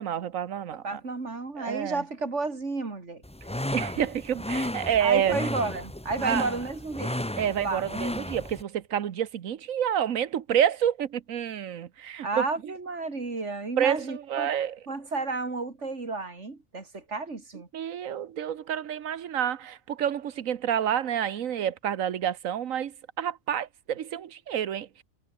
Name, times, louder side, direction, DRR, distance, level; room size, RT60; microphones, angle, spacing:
voice 1, 0.0-1.0 1.6-2.0 3.7-5.5 6.2-6.5 7.4-12.4 13.8-14.8 17.7-25.0, right 9 dB, 85° right, 1.4 m, -28 dB
voice 2, 0.7-3.2 5.0-7.2 7.6-7.9 12.2-14.5 14.9-17.7, right 3 dB, 65° right, 3.4 m, -32 dB
sound 1, 3.2-8.6, left 1 dB, 5° left, 0.8 m, -33 dB
omnidirectional pair, 1.3 m